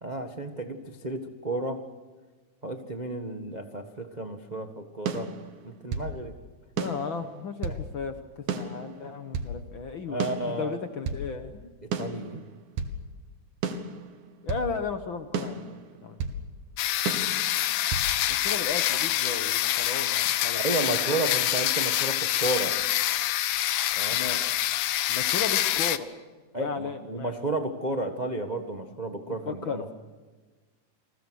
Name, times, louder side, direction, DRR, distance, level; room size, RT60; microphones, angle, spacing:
voice 1, 0.0-1.9 2.6-5.3 5.6-6.3 7.7-7.8 10.1-10.8 11.8-12.4 20.5-22.8 24.0-24.2 26.5-29.8, right 2 dB, 50° right, 5 dB, 0.5 m, -32 dB
sound 1, 5.1-6.1 6.8-7.8 8.5-9.6 10.2-11.2 11.9-13.0 13.6-14.7 15.3-16.4 17.1-18.1, right 4 dB, 85° right, 3.1 m, -33 dB
voice 2, 6.8-8.2 8.5-10.3 10.6-11.7 14.4-16.2 18.3-20.6 24.1-24.7 25.1-26.1 26.6-27.3 29.3-29.9, left 5 dB, 55° left, 7 dB, 1.4 m, -35 dB
sound 2, 16.8-26.0, left 13 dB, 80° left, 2.4 m, -26 dB
29.0 x 22.0 x 6.4 m, 1.3 s
omnidirectional pair, 3.6 m